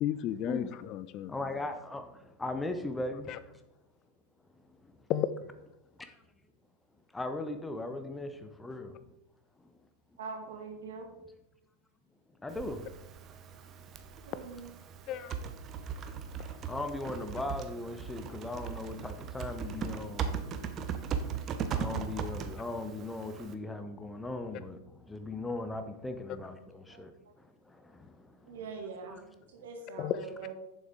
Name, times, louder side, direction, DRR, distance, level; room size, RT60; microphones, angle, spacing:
voice 1, 0.0-1.3 3.3-3.4 5.1-5.3 15.1-15.4 30.0-30.2, left 11 dB, 35° left, 0.4 m, -33 dB
voice 2, 1.3-3.4 4.7-4.9 6.0-6.2 7.1-9.0 9.6-9.7 12.4-12.9 13.6-13.7 16.4-20.6 21.1-28.6 29.0-29.2, left 2 dB, 10° left, 0.8 m, -39 dB
voice 3, 10.2-11.1 14.3-14.7 26.9-27.1 28.5-30.5, right 5 dB, 60° right, 1.8 m, -43 dB
Typing, 12.5-23.5, right 6 dB, 30° right, 0.8 m, -38 dB
8.6 x 7.3 x 3.7 m
figure-of-eight pair, 90°, 0 cm